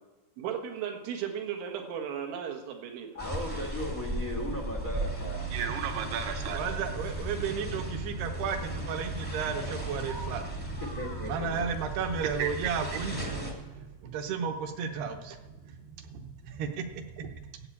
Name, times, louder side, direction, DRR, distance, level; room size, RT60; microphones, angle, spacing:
voice 1, 0.4-3.2, right 8 dB, 90° right, 2 dB, 4.0 m, -36 dB
voice 2, 3.1-5.4 10.8-11.7, equal, 75° left, 2 dB, 0.7 m, -37 dB
sound 1, 3.2-13.5, right 1 dB, 20° right, 0.6 m, -36 dB
voice 3, 5.5-10.8 11.2-17.6, right 6 dB, 70° right, 6 dB, 2.7 m, -34 dB
14.5 x 8.0 x 8.5 m, 1.2 s
omnidirectional pair, 5.3 m